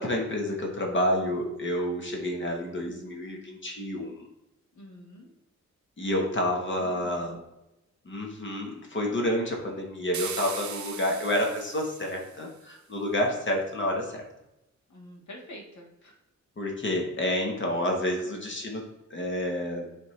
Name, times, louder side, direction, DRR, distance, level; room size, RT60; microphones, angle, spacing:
voice 1, 0.0-4.3 6.0-7.4 8.1-14.2 16.6-18.8 19.1-19.9, left 1 dB, 40° left, 1 dB, 1.1 m, -29 dB
voice 2, 4.7-5.3 6.3-7.3 14.9-16.2, left 1 dB, 75° left, 0 dB, 1.6 m, -47 dB
sound 1, 10.1-12.5, right 8 dB, 70° right, 0.6 m, -39 dB
8.6 x 3.4 x 3.1 m, 0.92 s
wide cardioid pair, 160°, 29 cm